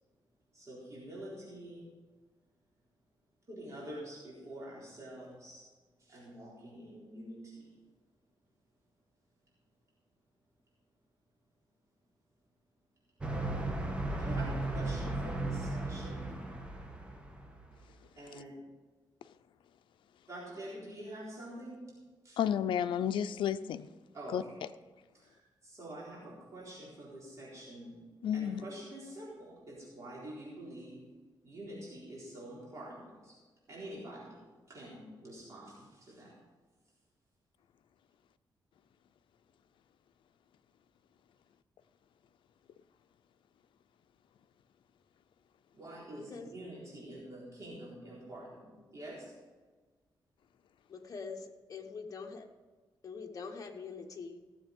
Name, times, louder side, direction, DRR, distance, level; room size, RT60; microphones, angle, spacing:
voice 1, 0.5-1.9 3.5-5.6 6.0-7.7 14.1-16.3 16.7-16.8 18.2-18.6 20.3-21.8 22.2-22.4 24.1-24.4 25.1-28.0 28.3-31.0 31.4-33.3 33.7-34.4 34.7-36.3 45.7-48.7 48.9-49.3, right 1 dB, 40° right, 4.1 m, -46 dB
sound 1, 13.2-17.8, right 2 dB, 15° right, 1.4 m, -36 dB
voice 2, 22.4-23.9 24.3-24.4 28.2-28.6, left 9 dB, 85° left, 0.5 m, -31 dB
voice 3, 50.9-52.4 53.0-54.4, left 5 dB, 45° left, 1.2 m, -44 dB
16.5 x 7.5 x 5.3 m
cardioid pair, 120°, 8 cm